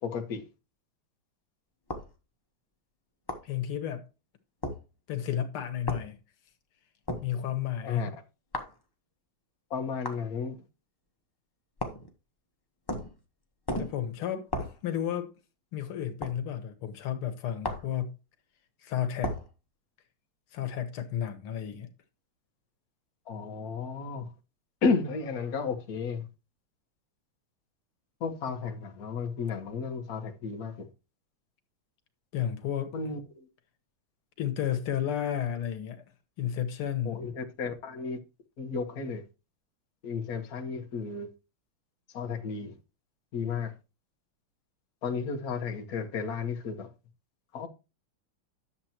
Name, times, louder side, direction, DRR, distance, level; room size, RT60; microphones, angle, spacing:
voice 1, 0.0-0.5 7.8-8.1 9.7-10.6 23.3-24.3 24.8-26.3 28.2-30.9 32.9-33.5 37.0-38.2 38.6-39.2 40.0-41.3 42.1-42.7 43.3-43.7 45.0-46.9 47.5-47.7, left 5 dB, 50° left, 1.7 m, -33 dB
sound 1, 1.9-2.1 3.3-3.5 4.6-4.8 5.9-6.1 7.1-7.3 8.5-8.8 10.0-10.2 11.8-12.1 12.9-13.2 13.7-14.0 14.5-14.8 16.2-16.4 17.6-17.9 19.2-19.5, left 1 dB, 20° left, 0.5 m, -34 dB
voice 2, 3.4-4.0 5.1-6.2 7.2-8.1 13.8-14.5 14.8-15.3 15.7-18.2 18.8-19.4 20.5-21.9 32.3-32.9 34.4-36.0 36.4-37.2, left 10 dB, 90° left, 2.1 m, -32 dB
10.5 x 7.1 x 2.9 m
omnidirectional pair, 2.3 m